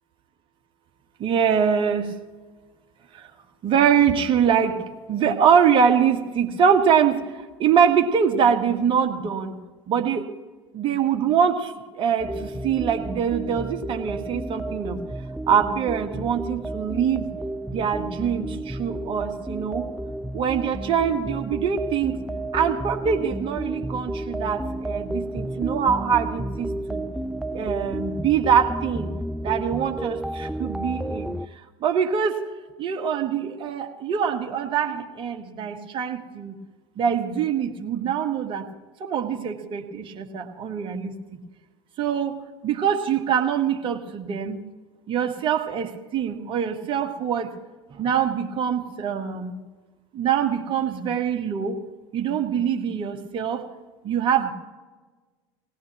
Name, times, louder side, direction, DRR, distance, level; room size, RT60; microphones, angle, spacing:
voice 1, 1.2-2.1 3.6-4.8 5.1-7.3 7.6-9.6 9.9-10.3 10.7-11.7 12.0-15.0 15.5-17.3 17.7-19.9 20.3-22.2 22.5-27.0 27.5-29.1 29.4-31.3 31.8-32.4 32.8-36.5 37.0-38.6 39.0-41.1 42.0-42.4 42.6-44.6 45.1-47.5 48.0-49.5 50.1-51.8 52.1-53.6 54.0-54.5, right 7 dB, 35° right, 4 dB, 1.5 m, -23 dB
sound 1, 12.2-31.5, right 1 dB, 5° right, 0.4 m, -32 dB
19.0 x 18.5 x 3.1 m, 1.3 s
figure-of-eight pair, 75°, 14 cm